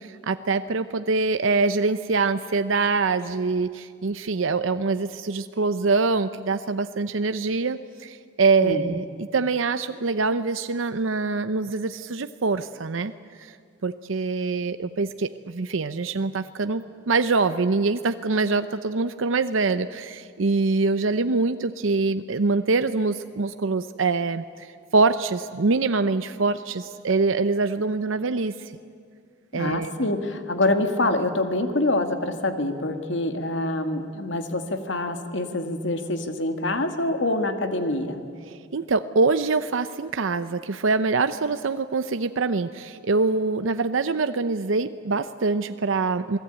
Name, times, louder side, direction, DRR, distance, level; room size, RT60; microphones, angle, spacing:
voice 1, 0.0-13.1 13.4-13.5 13.8-24.7 24.9-28.7 29.5-30.1 38.5-46.4, right 3 dB, 85° right, 10 dB, 0.7 m, -24 dB
voice 2, 29.5-38.2, left 2 dB, 70° left, 7 dB, 2.0 m, -26 dB
27.0 x 19.5 x 9.0 m, 2.2 s
head